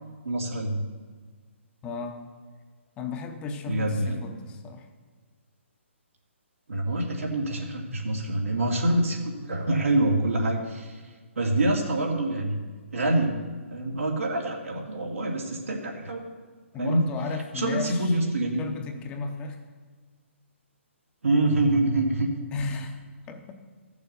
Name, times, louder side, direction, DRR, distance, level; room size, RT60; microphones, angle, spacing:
voice 1, 0.2-0.8 3.7-4.2 6.7-11.0 11.4-12.6 12.9-13.4 13.7-16.2 16.8-17.0 17.5-18.7 21.2-22.3, right 1 dB, 90° right, 0 dB, 2.5 m, -26 dB
voice 2, 1.8-2.3 3.0-4.9 16.7-18.1 18.6-19.6 22.5-23.0 23.3-23.5, left 4 dB, 15° left, 5 dB, 0.7 m, -34 dB
13.5 x 7.0 x 6.7 m, 1.5 s
hypercardioid pair, 160°, 7 cm